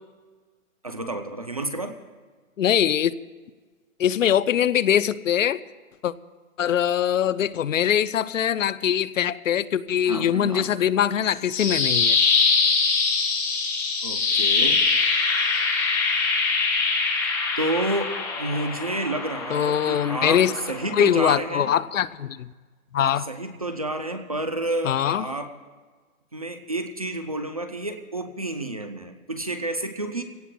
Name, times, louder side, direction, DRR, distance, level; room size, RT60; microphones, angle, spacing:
voice 1, 0.8-2.0 10.1-10.8 14.0-15.2 17.6-21.7 23.0-25.5 26.3-30.2, right 2 dB, 30° right, 7 dB, 0.4 m, -30 dB
voice 2, 2.6-3.1 4.0-5.6 6.0-6.1 6.6-12.2 19.5-20.5 20.9-22.5 22.9-23.3 24.8-25.2, left 9 dB, 65° left, 16 dB, 0.6 m, -22 dB
sound 1, 11.2-21.3, left 4 dB, 10° left, 0.9 m, -24 dB
27.5 x 17.5 x 2.2 m, 1.4 s
hypercardioid pair, 170°, 41 cm